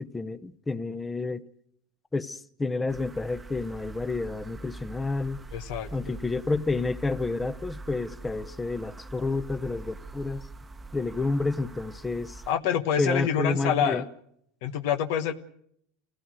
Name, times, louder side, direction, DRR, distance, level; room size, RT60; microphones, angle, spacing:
voice 1, 0.0-1.5 2.1-5.4 5.9-10.5 10.9-12.4 13.0-14.0, left 3 dB, 15° left, 0.8 m, -30 dB
sound 1, 2.9-12.5, right 2 dB, 15° right, 1.0 m, -43 dB
voice 2, 5.5-6.2 12.5-14.0 14.6-15.3, left 9 dB, 70° left, 1.2 m, -27 dB
26.5 x 16.5 x 6.3 m
supercardioid pair, 110°, 0 cm